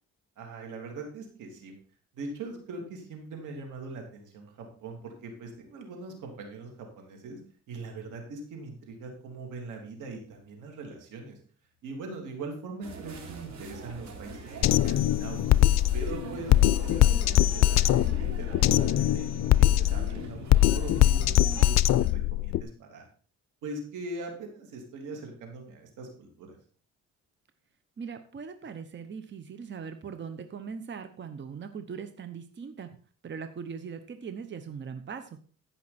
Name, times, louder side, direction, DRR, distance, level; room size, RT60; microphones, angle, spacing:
voice 1, 0.4-1.7 2.1-7.4 7.7-11.4 11.8-15.5 15.9-23.1 23.6-26.5, right 3 dB, 85° right, 2 dB, 3.1 m, -41 dB
sound 1, 12.8-21.7, right 4 dB, 70° right, 3.2 m, -42 dB
Drum kit, 14.6-22.6, left 14 dB, 60° left, 0.5 m, -22 dB
voice 2, 28.0-32.9 33.2-35.4, right 6 dB, 40° right, 9 dB, 1.0 m, -40 dB
15.0 x 5.8 x 4.3 m, 0.43 s
cardioid pair, 90°, 30 cm